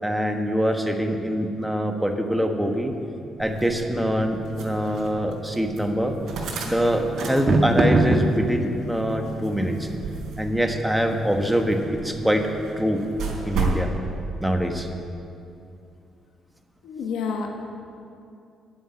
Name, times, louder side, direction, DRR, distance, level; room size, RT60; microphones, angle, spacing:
voice 1, 0.0-2.9 3.4-4.4 4.6-6.1 6.6-9.9 10.4-12.4 12.8-13.0 13.4-13.9 14.4-14.9, equal, 5° right, 4 dB, 1.4 m, -24 dB
sound 1, 2.9-13.7, right 2 dB, 30° right, 1.4 m, -29 dB
sound 2, 3.4-13.9, right 4 dB, 70° right, 3.7 m, -35 dB
voice 2, 16.8-17.7, left 5 dB, 85° left, 2 dB, 1.3 m, -29 dB
11.0 x 7.3 x 9.7 m, 2.6 s
cardioid pair, 90°, 0 cm